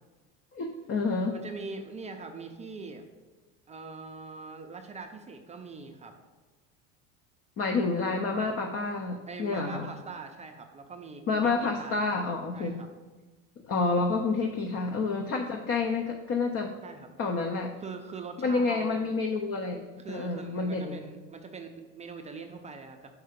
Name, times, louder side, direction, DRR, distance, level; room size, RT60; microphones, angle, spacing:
voice 1, 0.5-1.4 7.6-9.9 11.3-12.8 13.7-16.7 17.2-17.7 18.4-21.1, left 3 dB, 35° left, 3 dB, 0.6 m, -29 dB
voice 2, 1.3-3.1 3.7-6.1 9.3-12.1 12.5-12.9 16.8-17.1 17.8-19.0 20.0-23.1, right 4 dB, 20° right, 4 dB, 0.4 m, -42 dB
5.4 x 4.7 x 5.1 m, 1.2 s
supercardioid pair, 125°, 37 cm